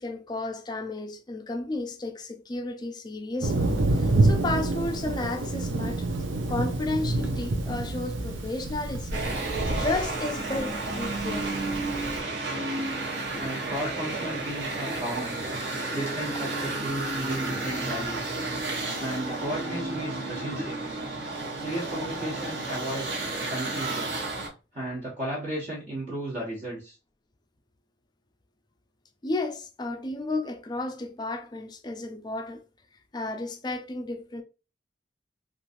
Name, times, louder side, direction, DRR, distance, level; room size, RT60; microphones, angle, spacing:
voice 1, 0.0-3.5 3.9-6.1 6.5-9.2 9.8-11.5 13.8-13.9 14.9-15.0 29.2-32.6 33.1-34.4, left 2 dB, 20° left, 0.4 m, -32 dB
Thunder, 3.4-12.2, right 2 dB, 90° right, 0.6 m, -28 dB
sound 1, 9.1-24.5, right 2 dB, 65° right, 1.2 m, -32 dB
voice 2, 13.4-15.4 15.9-18.3 19.0-20.8 21.6-24.2 24.7-26.9, right 1 dB, 40° right, 1.0 m, -34 dB
3.0 x 2.5 x 2.5 m
head